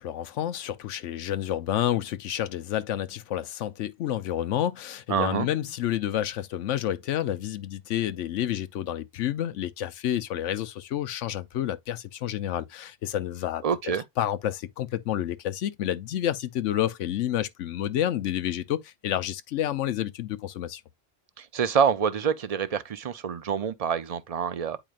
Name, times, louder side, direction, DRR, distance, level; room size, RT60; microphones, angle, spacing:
voice 1, 0.0-13.6 14.2-20.8, left 11 dB, 90° left, 1.0 m, -29 dB
voice 2, 5.1-5.5 13.6-14.0 21.4-24.8, right 7 dB, 40° right, 0.5 m, -26 dB
8.9 x 4.9 x 2.4 m
omnidirectional pair, 1.2 m